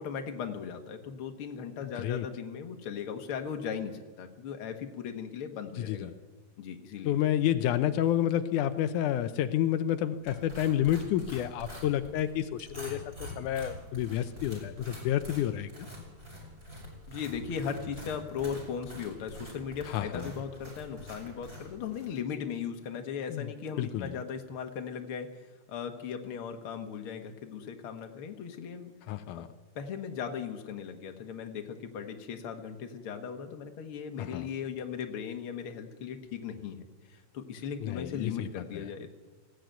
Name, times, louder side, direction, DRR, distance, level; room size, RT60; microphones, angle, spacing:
voice 1, 0.0-6.1 6.6-7.1 17.1-25.3 25.7-28.9 29.3-29.4 29.8-36.9 37.1-39.1, left 7 dB, 50° left, 5 dB, 2.2 m, -38 dB
voice 2, 5.8-6.1 7.1-15.9 19.9-20.3 23.3-23.5 23.8-24.2 29.1-29.5 34.2-34.5 37.8-38.9, left 11 dB, 85° left, 10 dB, 2.2 m, -30 dB
sound 1, 10.3-22.1, left 1 dB, 20° right, 6.0 m, -45 dB
19.5 x 16.0 x 9.2 m, 1.3 s
omnidirectional pair, 3.5 m